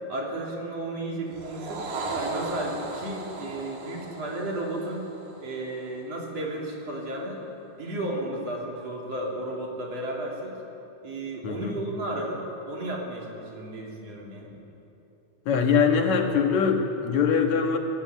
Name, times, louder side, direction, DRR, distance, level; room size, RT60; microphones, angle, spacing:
voice 1, 0.1-1.8 2.1-5.1 5.4-7.4 7.8-10.5 11.0-14.6, right 1 dB, 60° right, -1 dB, 4.3 m, -33 dB
sound 1, 1.3-5.9, right 2 dB, 85° right, 3.3 m, -36 dB
voice 2, 11.4-11.8 15.5-17.8, left 6 dB, 70° left, 3 dB, 3.1 m, -23 dB
23.0 x 17.5 x 8.4 m, 2.9 s
omnidirectional pair, 3.3 m